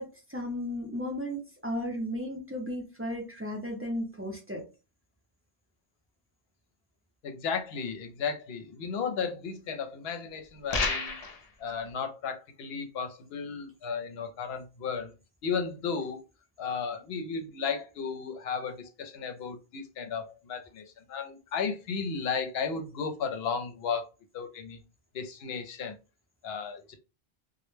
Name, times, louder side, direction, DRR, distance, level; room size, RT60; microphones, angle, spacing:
voice 1, 0.0-4.6, equal, 20° right, 0 dB, 0.4 m, -35 dB
voice 2, 7.2-11.2 11.6-15.1 15.4-16.2 16.6-24.1 24.3-24.8 25.1-25.9 26.4-26.9, left 6 dB, 75° left, 6 dB, 0.8 m, -34 dB
sound 1, 10.7-11.4, left 3 dB, 50° left, 0.4 m, -29 dB
2.1 x 2.1 x 3.1 m, 0.30 s
omnidirectional pair, 1.1 m